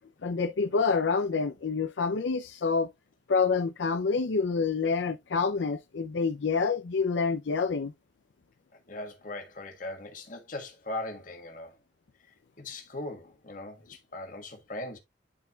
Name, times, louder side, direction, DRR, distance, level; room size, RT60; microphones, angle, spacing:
voice 1, 0.2-2.9 3.3-7.9, left 4 dB, 75° left, 0.5 m, -27 dB
voice 2, 8.9-11.8 12.3-15.0, left 2 dB, 45° left, 1.5 m, -39 dB
11.5 x 4.4 x 2.3 m
head